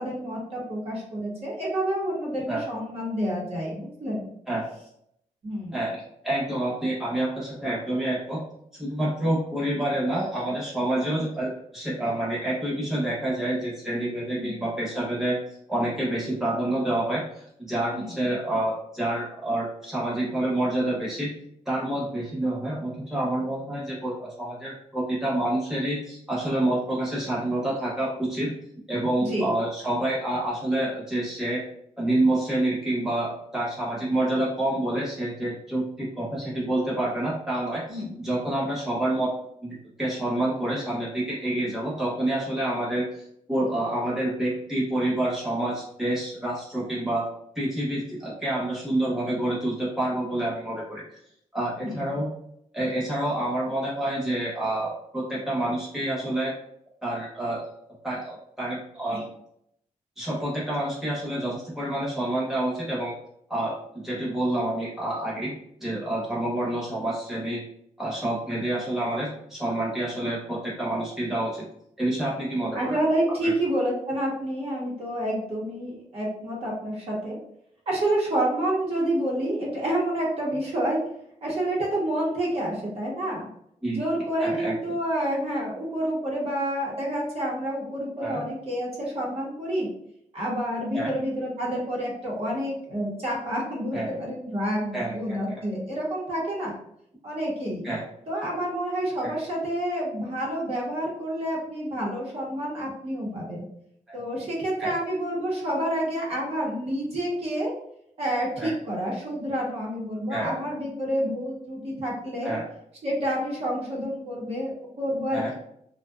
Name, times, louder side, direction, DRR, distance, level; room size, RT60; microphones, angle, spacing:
voice 1, 0.0-4.3 5.4-5.8 14.4-14.5 17.9-18.2 29.2-29.5 37.9-38.2 51.8-52.1 59.1-59.2 72.7-77.4 77.9-81.0 81.4-83.5 83.9-89.9 90.3-96.7 97.2-97.8 98.3-103.6 104.1-107.7 108.2-112.5 113.0-115.5, right 1 dB, 50° right, -4 dB, 0.8 m, -28 dB
voice 2, 6.2-8.4 8.7-15.4 15.7-21.3 21.7-28.5 28.9-31.6 32.0-39.3 39.6-47.3 47.5-51.0 51.5-52.3 52.7-56.5 57.0-57.6 58.0-59.2 60.2-63.1 63.5-63.8 64.0-65.5 65.8-67.6 68.0-71.7 72.0-73.0 73.4-73.5 83.8-84.0 84.4-85.0 88.2-88.4 90.9-91.1 93.9-94.2 94.9-95.6 97.8-98.0 99.2-99.3 104.1-104.2 104.8-105.0 108.6-108.7 110.3-110.6 112.4-112.6 115.3-115.5, right 1 dB, 5° right, -7 dB, 0.8 m, -28 dB
2.5 x 2.1 x 2.3 m, 0.73 s
wide cardioid pair, 145°, 13 cm